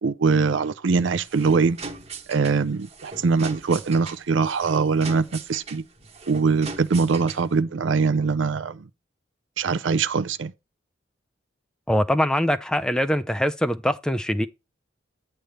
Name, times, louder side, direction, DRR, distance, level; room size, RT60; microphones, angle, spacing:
voice 1, 0.0-1.8 2.3-5.8 6.3-8.8 9.6-10.5, right 4 dB, 70° right, 0.5 m, -22 dB
sound 1, 1.0-7.6, right 4 dB, 35° right, 1.1 m, -39 dB
voice 2, 11.9-14.5, equal, 5° left, 0.4 m, -23 dB
9.1 x 3.3 x 6.7 m
head